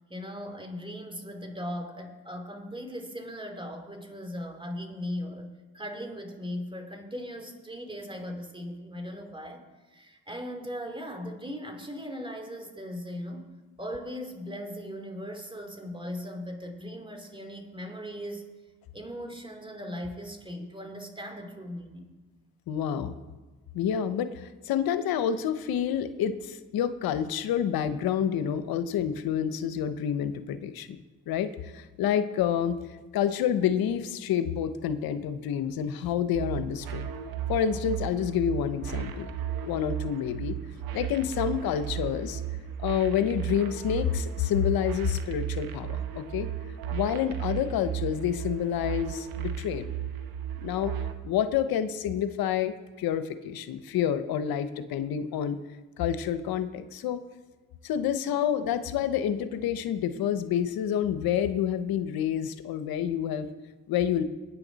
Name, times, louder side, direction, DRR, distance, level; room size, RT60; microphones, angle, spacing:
voice 1, 0.1-9.6 9.9-13.5 13.8-18.5 18.9-22.1, equal, 15° right, 4 dB, 2.7 m, -38 dB
voice 2, 22.7-23.2 23.7-30.9 31.3-32.8 33.1-37.1 37.5-39.3 39.6-40.5 40.9-42.4 42.8-46.5 46.9-49.9 50.6-51.0 51.2-55.6 56.0-57.2 57.8-63.5 63.9-64.2, left 9 dB, 85° left, 11 dB, 0.8 m, -28 dB
sound 1, 36.3-51.1, right 10 dB, 80° right, 1.2 m, -35 dB
22.0 x 9.2 x 4.0 m, 1.3 s
cardioid pair, 65°, 35 cm